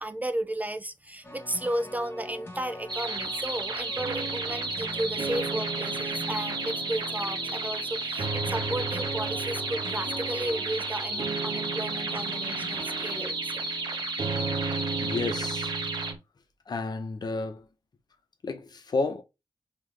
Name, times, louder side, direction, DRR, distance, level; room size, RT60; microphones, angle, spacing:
voice 1, 0.0-13.3, right 1 dB, 20° right, 0.3 m, -34 dB
sound 1, 1.2-13.3, left 2 dB, 25° left, 0.9 m, -45 dB
sound 2, 2.9-16.1, right 3 dB, 55° right, 0.9 m, -33 dB
sound 3, 4.0-16.2, right 4 dB, 90° right, 1.0 m, -36 dB
voice 2, 15.0-15.7 16.7-17.7 18.4-19.2, left 3 dB, 55° left, 0.7 m, -31 dB
3.7 x 2.9 x 3.2 m
wide cardioid pair, 95°, 9 cm